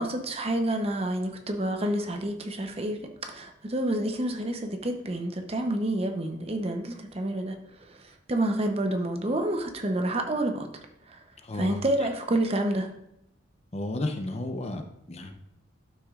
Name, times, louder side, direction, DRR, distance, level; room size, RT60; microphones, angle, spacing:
voice 1, 0.0-7.6 7.9-8.0 8.3-10.7 11.1-11.2 11.6-12.9, right 1 dB, 30° right, 5 dB, 0.7 m, -28 dB
voice 2, 11.4-11.8 13.7-14.8 15.1-15.3, left 1 dB, 35° left, 5 dB, 0.7 m, -32 dB
12.0 x 6.1 x 2.4 m, 0.79 s
head